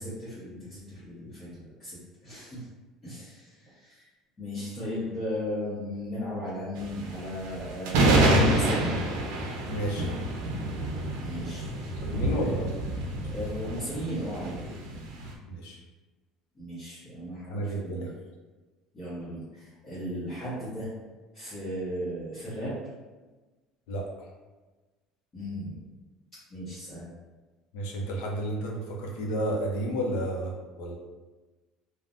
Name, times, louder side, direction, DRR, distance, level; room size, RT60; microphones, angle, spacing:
voice 1, 0.0-2.6 3.0-4.1 4.4-8.9 11.2-12.7 13.2-15.2 16.5-18.1 18.9-20.9 21.3-22.8 25.3-25.8 26.5-27.1, equal, 25° left, -13 dB, 1.1 m, -36 dB
sound 1, 6.8-15.3, right 1 dB, 90° right, 0.5 m, -27 dB
voice 2, 9.7-10.1 11.8-12.8 15.5-15.8 17.5-18.1 23.9-24.3 27.7-30.9, right 1 dB, 85° left, 0 dB, 0.6 m, -32 dB
3.4 x 2.1 x 2.5 m, 1.2 s
cardioid pair, 155°, 0 cm